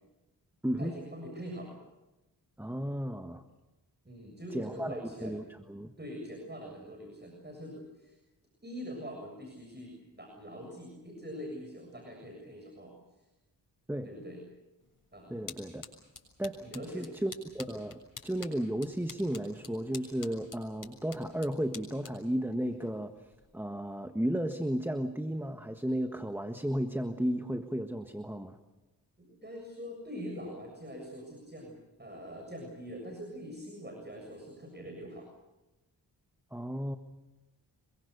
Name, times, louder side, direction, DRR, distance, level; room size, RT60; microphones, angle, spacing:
voice 1, 0.8-1.8 4.0-5.4 6.0-8.2 8.6-13.3 14.0-14.4 15.1-15.4 16.6-17.1 29.2-35.3, equal, 25° right, 2 dB, 7.2 m, -44 dB
voice 2, 2.6-3.4 4.5-5.9 13.9-14.1 15.3-15.8 16.4-16.7 16.9-28.6 36.5-37.0, equal, 5° right, 8 dB, 1.5 m, -34 dB
sound 1, 14.8-23.5, left 4 dB, 50° left, 6.8 m, -50 dB
27.5 x 23.0 x 6.8 m, 1.0 s
cardioid pair, 50°, 41 cm